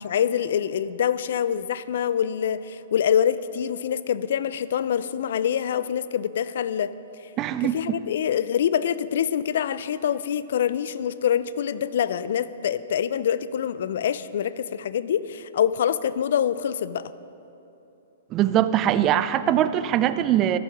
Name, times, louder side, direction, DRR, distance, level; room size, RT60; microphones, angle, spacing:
voice 1, 0.0-6.9 7.7-17.1, left 9 dB, 65° left, 16 dB, 0.4 m, -25 dB
voice 2, 7.4-8.0 18.3-20.6, right 11 dB, 30° right, 13 dB, 0.4 m, -22 dB
14.5 x 7.1 x 4.9 m, 2.9 s
hypercardioid pair, 120°, 0 cm